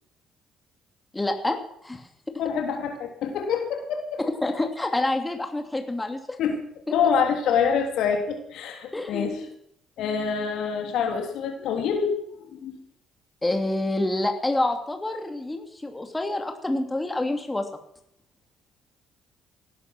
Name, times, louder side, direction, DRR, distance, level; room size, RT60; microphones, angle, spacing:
voice 1, 1.1-1.6 1.8-2.3 4.2-6.4 6.9-7.0 8.9-9.5 13.4-17.7, left 2 dB, 15° left, 5 dB, 2.7 m, -27 dB
voice 2, 2.4-4.2 6.4-6.6 6.9-9.4 10.0-12.2 12.5-12.8, left 6 dB, 65° left, 4 dB, 3.3 m, -26 dB
18.0 x 11.0 x 6.2 m, 0.70 s
hypercardioid pair, 50°, 0 cm